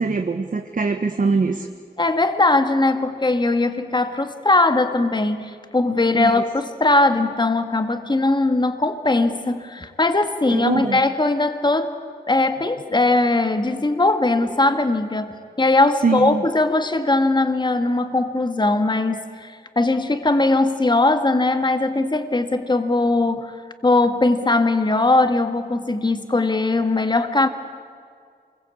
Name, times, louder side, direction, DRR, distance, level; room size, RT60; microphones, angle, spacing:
voice 1, 0.0-1.7 6.1-6.3 10.5-11.0 16.0-16.4, right 4 dB, 55° right, 5 dB, 1.3 m, -22 dB
voice 2, 2.0-11.9 12.3-23.6 23.8-27.5, left 2 dB, 25° left, 8 dB, 1.8 m, -20 dB
27.5 x 22.0 x 8.4 m, 2.1 s
wide cardioid pair, 100°, 17 cm